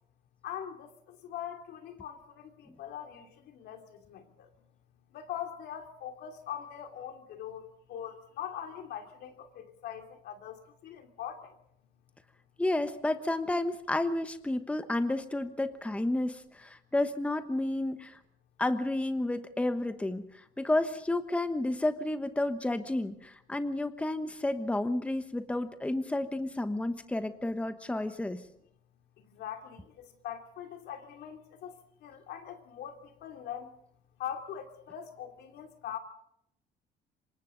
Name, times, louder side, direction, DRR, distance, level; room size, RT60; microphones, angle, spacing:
voice 1, 0.4-4.5 5.1-11.5 29.2-33.7 34.2-36.0, left 9 dB, 75° left, 4 dB, 2.9 m, -42 dB
voice 2, 12.6-18.2 18.6-28.4, left 2 dB, 5° left, 9 dB, 1.2 m, -31 dB
27.0 x 24.5 x 3.9 m, 0.72 s
cardioid pair, 110°, 17 cm